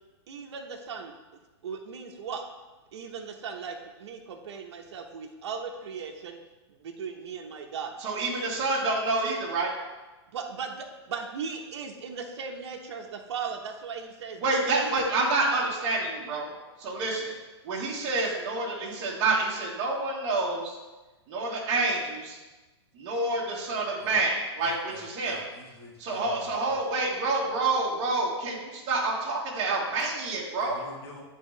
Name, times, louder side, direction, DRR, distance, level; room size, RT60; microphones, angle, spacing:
voice 1, 0.3-1.1 1.6-2.4 2.9-6.4 6.7-8.0 10.3-14.4 14.8-15.7, right 6 dB, 65° right, 2 dB, 1.0 m, -38 dB
voice 2, 8.0-9.7 14.4-16.5 16.8-17.3 17.6-20.8 21.3-22.4 22.9-25.4 26.0-30.8, right 3 dB, 35° right, -5 dB, 1.5 m, -28 dB
voice 3, 24.6-26.8 30.6-31.2, left 2 dB, 60° left, -1 dB, 1.7 m, -47 dB
9.8 x 3.7 x 3.2 m, 1.2 s
hypercardioid pair, 150°, 15 cm